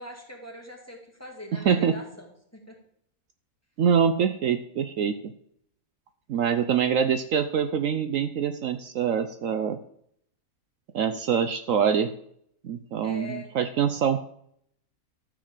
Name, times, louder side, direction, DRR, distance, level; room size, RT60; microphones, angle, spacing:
voice 1, 0.0-2.7 13.0-13.5, left 1 dB, 10° left, 0 dB, 2.2 m, -42 dB
voice 2, 1.5-2.0 3.8-5.3 6.3-9.8 10.9-12.1 12.6-14.2, right 7 dB, 70° right, 9 dB, 1.0 m, -25 dB
13.0 x 4.9 x 7.5 m, 0.68 s
omnidirectional pair, 1.5 m